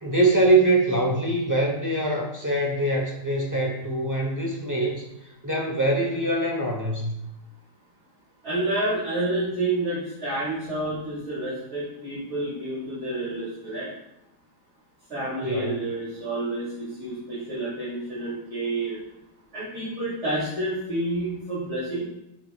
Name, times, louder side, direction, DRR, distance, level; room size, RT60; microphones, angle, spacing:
voice 1, 0.0-5.0 5.4-7.2 15.4-15.8, right 2 dB, 20° right, -1 dB, 0.4 m, -23 dB
voice 2, 8.4-13.9 15.1-19.0 19.5-22.0, right 2 dB, 40° right, -11 dB, 3.0 m, -29 dB
7.7 x 6.7 x 2.3 m, 0.85 s
omnidirectional pair, 2.0 m